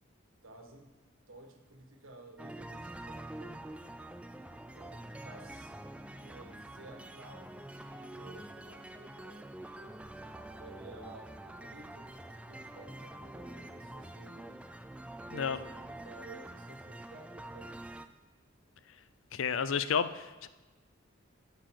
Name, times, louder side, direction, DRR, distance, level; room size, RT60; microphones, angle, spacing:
voice 1, 0.4-0.9 1.3-3.8 4.7-5.7 6.1-10.0 10.6-14.6 15.2-17.8, right 2 dB, 85° right, 4 dB, 1.5 m, -54 dB
sound 1, 2.4-18.1, right 1 dB, 5° right, 0.3 m, -46 dB
voice 2, 19.3-20.5, left 6 dB, 80° left, 14 dB, 0.5 m, -31 dB
9.4 x 6.9 x 5.9 m, 1.2 s
head